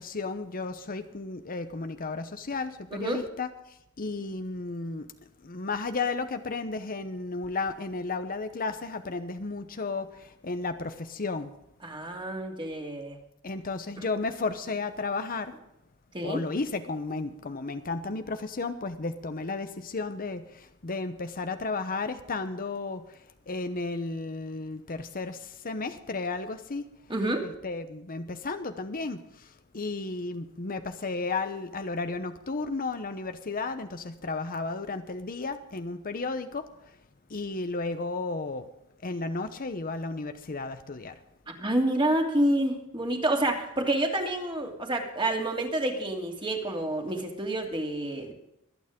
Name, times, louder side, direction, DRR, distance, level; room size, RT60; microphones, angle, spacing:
voice 1, 0.0-3.5 4.0-5.1 5.4-11.5 13.4-15.5 16.2-23.0 23.5-26.8 27.4-29.5 29.7-36.7 37.3-38.6 39.0-41.1, left 3 dB, 40° left, 9 dB, 0.8 m, -33 dB
voice 2, 2.9-3.2 11.8-13.2 14.0-14.1 16.1-16.4 27.1-27.5 41.6-48.3, right 1 dB, 25° right, 1 dB, 2.7 m, -28 dB
24.0 x 9.2 x 3.7 m, 0.82 s
head